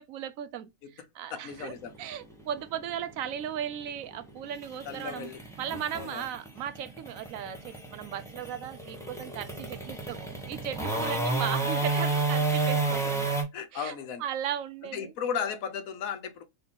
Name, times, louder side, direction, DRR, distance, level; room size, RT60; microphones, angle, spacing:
voice 1, 0.0-1.7 2.0-5.3 5.6-13.4 13.7-15.1, right 9 dB, 80° right, 1.0 m, -37 dB
voice 2, 1.3-1.9 4.8-5.4 5.9-6.3 13.0-13.1 13.5-14.2 14.9-16.5, left 7 dB, 85° left, 1.2 m, -35 dB
sound 1, 1.5-13.4, right 3 dB, ahead, 1.1 m, -31 dB
3.7 x 2.8 x 4.4 m
omnidirectional pair, 1.4 m